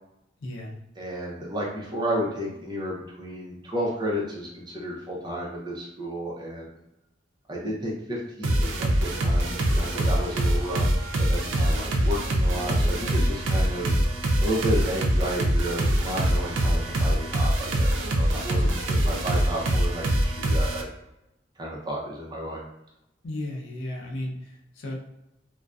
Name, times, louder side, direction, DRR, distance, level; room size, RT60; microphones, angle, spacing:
voice 1, 0.4-0.8 18.6-18.7 23.2-25.0, left 1 dB, 80° left, -1 dB, 0.6 m, -35 dB
voice 2, 1.0-6.8 7.5-10.9 11.3-13.9 14.4-20.9 21.6-22.7, equal, 20° right, -3 dB, 0.5 m, -32 dB
sound 1, 8.4-20.8, right 1 dB, 75° right, 0.4 m, -24 dB
2.5 x 2.1 x 2.3 m, 0.87 s
head